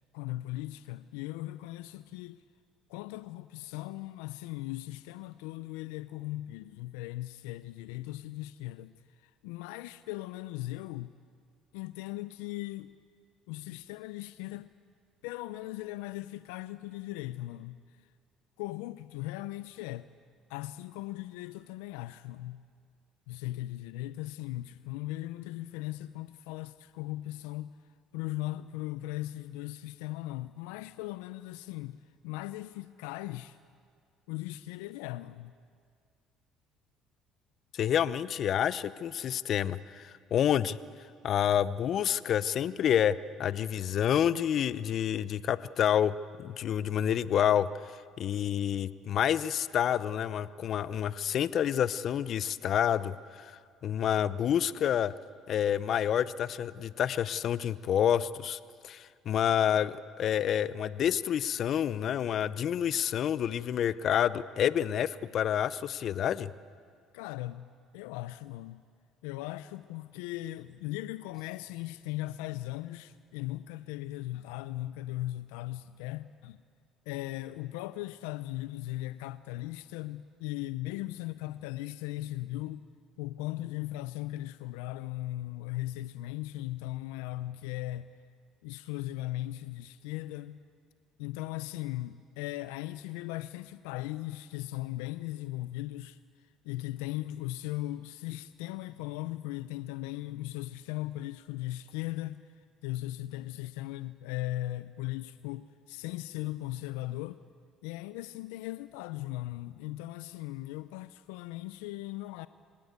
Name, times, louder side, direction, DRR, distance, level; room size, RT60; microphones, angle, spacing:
voice 1, 0.1-2.4 2.9-8.9 9.2-11.1 11.7-12.9 13.5-14.7 15.2-17.8 18.6-20.1 20.5-22.6 23.3-27.7 28.1-33.6 34.3-35.5 67.1-68.8 69.2-76.6 77.1-82.8 83.2-88.1 88.6-90.6 91.2-96.2 96.6-102.4 102.8-107.4 107.8-112.5, left 16 dB, 90° left, 0.5 m, -38 dB
voice 2, 37.7-40.8 41.2-47.7 48.2-53.5 53.8-55.1 55.5-58.6 58.8-66.5, left 9 dB, 55° left, 0.7 m, -28 dB
24.5 x 18.0 x 8.1 m
supercardioid pair, 80°, 0 cm